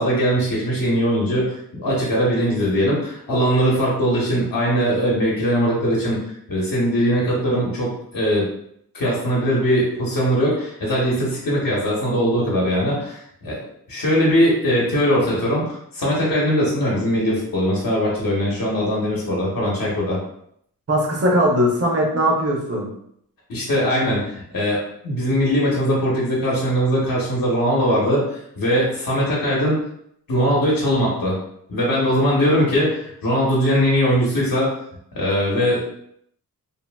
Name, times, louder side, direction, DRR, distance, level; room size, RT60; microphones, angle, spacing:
voice 1, 0.0-6.2 6.5-8.5 8.9-13.6 13.9-20.2 23.5-29.8 30.3-31.4 31.7-34.7 35.1-35.8, equal, 70° left, -5 dB, 0.9 m, -20 dB
voice 2, 20.9-22.9, equal, 40° right, -2 dB, 0.7 m, -19 dB
2.7 x 2.5 x 2.2 m, 0.70 s
wide cardioid pair, 130°, 35 cm